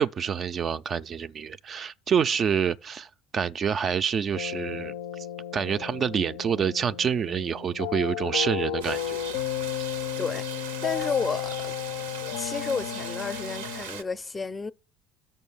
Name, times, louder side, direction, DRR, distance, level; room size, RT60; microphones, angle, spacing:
voice 1, 0.0-5.3 5.5-9.2, right 7 dB, 45° right, 0.3 m, -27 dB
sound 1, 4.3-13.8, left 12 dB, 80° left, 0.4 m, -33 dB
sound 2, 8.8-14.0, right 7 dB, 85° right, 0.6 m, -39 dB
voice 2, 10.8-11.7 12.4-14.7, left 4 dB, 20° left, 0.4 m, -31 dB
6.4 x 5.4 x 6.9 m
hypercardioid pair, 70°, 0 cm